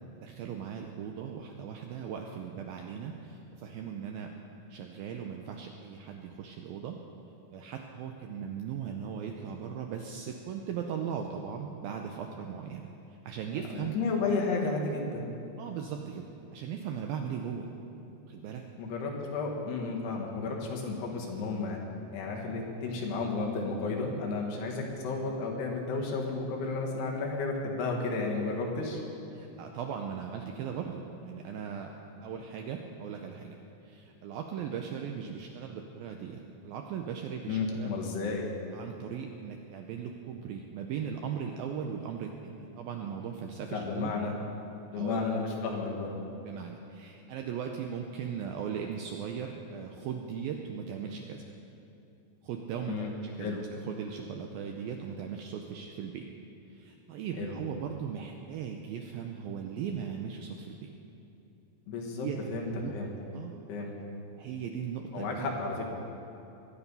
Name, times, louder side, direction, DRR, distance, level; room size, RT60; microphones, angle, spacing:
voice 1, 0.1-4.3 4.7-7.0 7.5-12.8 13.1-14.0 15.6-17.7 18.3-18.6 29.3-31.9 32.2-33.6 33.8-38.0 38.7-44.1 44.9-45.2 46.4-51.4 52.4-56.3 56.7-60.9 62.2-62.9 63.3-63.5 64.4-65.5, right 7 dB, 85° right, 3 dB, 2.1 m, -38 dB
voice 2, 13.8-15.3 18.8-21.8 22.1-29.0 37.5-38.5 43.7-44.3 44.9-46.1 52.9-53.1 53.4-53.6 57.4-57.5 61.9-63.1 63.7-63.9 65.1-65.8, left 3 dB, 70° left, -1 dB, 3.6 m, -32 dB
22.0 x 9.8 x 5.4 m, 2.8 s
omnidirectional pair, 5.0 m